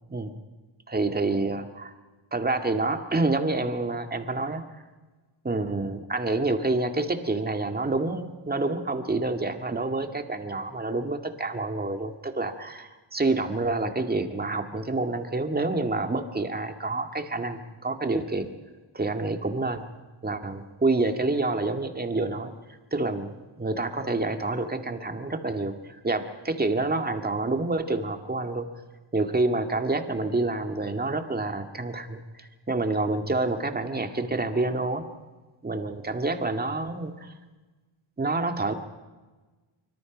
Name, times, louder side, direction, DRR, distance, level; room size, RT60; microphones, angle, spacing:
voice 1, 0.9-1.9 2.3-4.6 5.4-18.5 18.9-19.8 20.2-22.5 22.9-28.7 29.1-35.1 35.6-37.3 38.2-38.7, right 2 dB, 20° right, 6 dB, 2.0 m, -28 dB
25.0 x 24.5 x 5.2 m, 1.3 s
cardioid pair, 120°, 46 cm